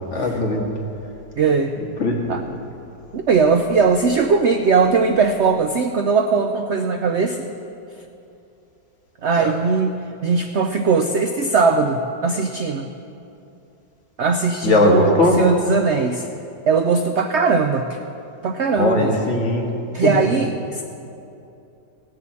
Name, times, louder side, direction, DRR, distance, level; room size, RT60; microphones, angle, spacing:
voice 1, 0.1-0.7 1.8-2.5 9.4-9.5 14.6-15.4 18.8-19.6 20.0-20.1, left 2 dB, 45° left, 0 dB, 1.9 m, -19 dB
voice 2, 1.4-1.7 2.3-2.4 3.1-7.5 9.2-9.9 10.2-12.9 14.2-16.3 16.7-18.0 18.4-19.1 19.9-20.8, right 5 dB, 65° right, 6 dB, 0.7 m, -19 dB
18.0 x 7.6 x 7.5 m, 2.7 s
omnidirectional pair, 1.8 m